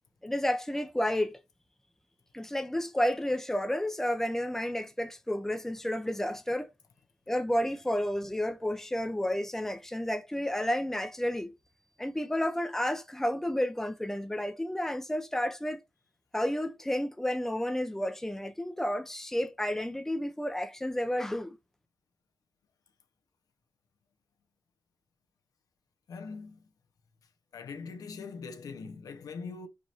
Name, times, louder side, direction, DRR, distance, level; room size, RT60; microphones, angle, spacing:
voice 1, 0.2-1.4 2.3-6.7 7.3-11.5 12.0-15.8 16.3-21.6, left 1 dB, 5° left, 0.7 m, -31 dB
voice 2, 26.1-26.6 27.5-29.7, left 5 dB, 75° left, 0.8 m, -42 dB
4.8 x 2.8 x 2.5 m
cardioid pair, 80°, 6 cm